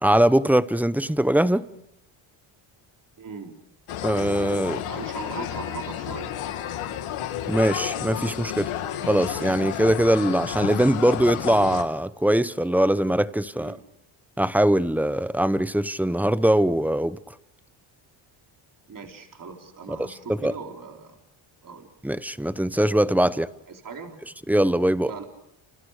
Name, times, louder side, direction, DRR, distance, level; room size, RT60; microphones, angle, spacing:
voice 1, 0.0-1.7 4.0-4.8 7.5-8.7 9.1-13.8 14.4-17.2 20.3-20.5 22.0-23.5 24.5-25.1, right 1 dB, 5° right, 0.9 m, -21 dB
voice 2, 3.2-3.5 4.9-6.4 13.5-13.8 18.9-21.2 21.6-21.9 23.7-24.2 25.0-25.2, right 5 dB, 40° right, 4.4 m, -39 dB
sound 1, 3.9-11.8, left 11 dB, 80° left, 2.6 m, -31 dB
29.0 x 28.5 x 5.1 m
cardioid pair, 95°, 50 cm